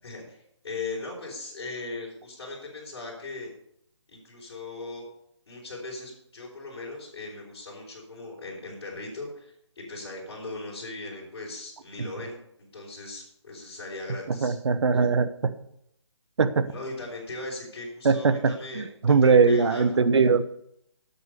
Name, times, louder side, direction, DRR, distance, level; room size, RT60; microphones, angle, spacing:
voice 1, 0.0-3.5 4.1-5.1 5.5-12.4 12.7-14.6 16.7-18.9 19.2-19.9, left 3 dB, 60° left, -6 dB, 5.4 m, -38 dB
voice 2, 14.3-15.3 16.4-16.6 18.0-18.3 18.8-20.4, right 5 dB, 65° right, 12 dB, 1.1 m, -20 dB
9.0 x 8.4 x 6.8 m, 0.74 s
hypercardioid pair, 165°, 15 cm